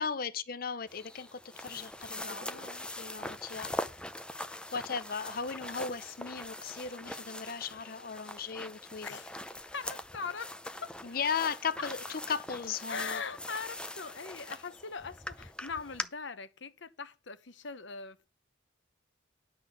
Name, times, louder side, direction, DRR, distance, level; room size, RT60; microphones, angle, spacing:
voice 1, 0.0-2.2 3.0-3.7 4.7-9.2 11.0-13.2, left 6 dB, 50° left, 0.6 m, -36 dB
sound 1, 0.9-16.0, left 1 dB, 5° left, 0.6 m, -42 dB
voice 2, 2.1-2.9 9.0-10.5 10.8-11.2 11.8-12.1 12.9-18.3, left 5 dB, 70° left, 1.0 m, -41 dB
11.0 x 4.0 x 6.8 m
head